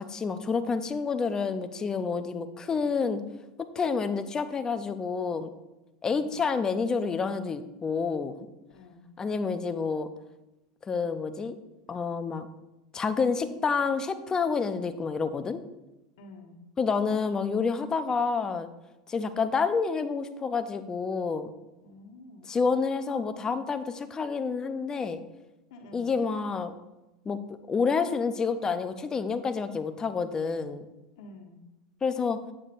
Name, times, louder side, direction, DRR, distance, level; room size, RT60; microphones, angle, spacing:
voice 1, 0.0-3.2 3.8-5.5 6.0-8.4 9.2-10.1 10.9-11.6 11.9-12.5 12.9-15.6 16.8-18.7 19.1-21.5 22.5-25.2 25.9-26.8 27.3-27.4 27.7-30.8 32.0-32.4, left 5 dB, 20° left, 10 dB, 0.6 m, -28 dB
voice 2, 8.7-9.1 16.2-16.6 21.8-22.5 25.7-26.1 31.2-31.6, left 2 dB, 70° left, 2 dB, 1.2 m, -49 dB
8.0 x 7.2 x 2.6 m, 1.0 s
hypercardioid pair, 110°, 3 cm